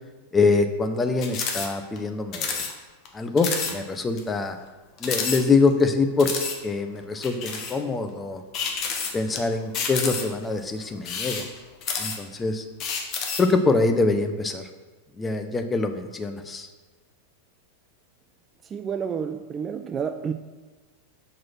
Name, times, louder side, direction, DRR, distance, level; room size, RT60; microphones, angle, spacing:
voice 1, 0.3-2.7 3.1-4.6 5.0-6.3 6.6-8.4 9.1-11.5 12.0-12.7 13.4-14.7 15.2-16.7, left 3 dB, 15° left, 7 dB, 0.7 m, -24 dB
sound 1, 1.2-1.7 2.0-2.1 2.3-2.7 3.1-3.2 3.4-3.7 4.2-4.3 5.0-5.8 6.2-6.6 7.2-7.8 8.5-9.4 9.7-10.4 11.0-12.4 12.8-13.5, left 5 dB, 35° left, 1.0 m, -29 dB
voice 2, 18.6-20.3, right 7 dB, 25° right, 8 dB, 0.3 m, -30 dB
6.0 x 4.7 x 5.8 m, 1.3 s
figure-of-eight pair, 90°, 0 cm